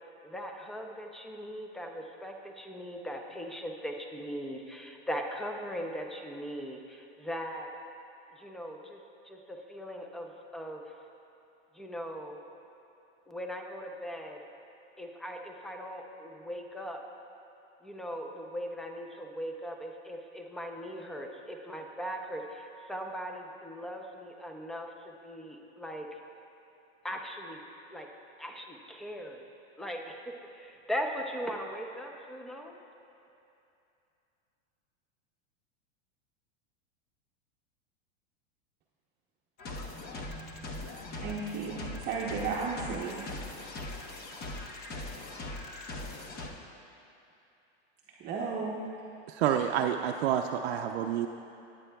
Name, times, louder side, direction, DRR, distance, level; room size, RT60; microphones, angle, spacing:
voice 1, 0.2-7.7 8.3-9.0 9.2-10.8 11.7-12.4 13.3-14.4 15.0-17.0 17.8-26.2 27.0-27.6 27.9-28.1 28.4-29.4 29.8-30.2 30.5-32.8, equal, ahead, 2 dB, 0.5 m, -39 dB
sound 1, 39.6-46.5, left 2 dB, 30° left, 0.9 m, -40 dB
voice 2, 41.2-43.3 48.2-48.8, right 5 dB, 30° right, -4 dB, 0.8 m, -34 dB
voice 3, 49.3-51.3, right 9 dB, 75° right, 4 dB, 0.5 m, -28 dB
18.5 x 9.1 x 2.3 m, 2.7 s
supercardioid pair, 140°, 33 cm